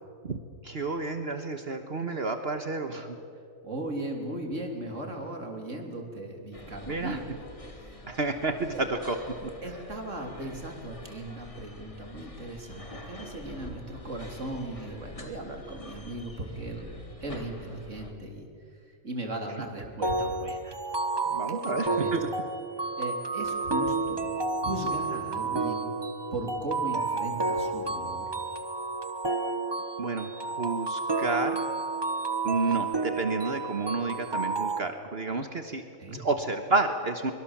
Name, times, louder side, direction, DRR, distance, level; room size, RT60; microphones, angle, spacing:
voice 1, 0.6-3.2 6.9-7.2 8.1-9.2 20.0-20.1 21.3-22.2 30.0-31.6 32.4-35.8 36.1-37.3, right 3 dB, 50° right, 7 dB, 1.5 m, -30 dB
voice 2, 3.6-7.4 7.8-8.0 9.6-16.9 17.2-18.5 19.0-20.8 21.5-22.2 23.0-24.3 24.6-25.9 26.3-28.3 36.0-36.2, right 1 dB, 70° right, 3 dB, 3.5 m, -37 dB
sound 1, 6.5-18.1, left 1 dB, 25° left, 2.1 m, -46 dB
sound 2, 20.0-34.8, right 3 dB, 20° right, 1.1 m, -31 dB
24.0 x 23.0 x 7.3 m, 2.4 s
omnidirectional pair, 1.4 m